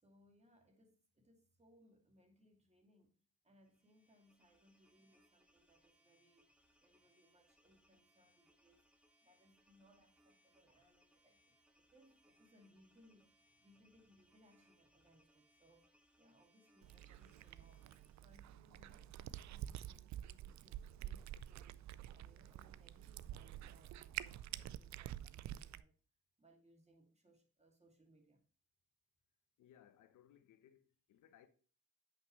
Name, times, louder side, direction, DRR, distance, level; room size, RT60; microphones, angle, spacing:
voice 1, 0.0-3.2 3.4-8.9 9.2-15.9 16.2-26.0 26.4-28.4, equal, 20° right, 2.5 m, -70 dB
sound 1, 3.6-18.4, equal, 5° right, 2.1 m, -74 dB
Cat, 16.8-25.8, right 12 dB, 65° right, 0.5 m, -49 dB
voice 2, 29.6-31.5, left 10 dB, 80° left, 1.0 m, -65 dB
9.4 x 5.8 x 3.1 m
cardioid pair, 90°, 30 cm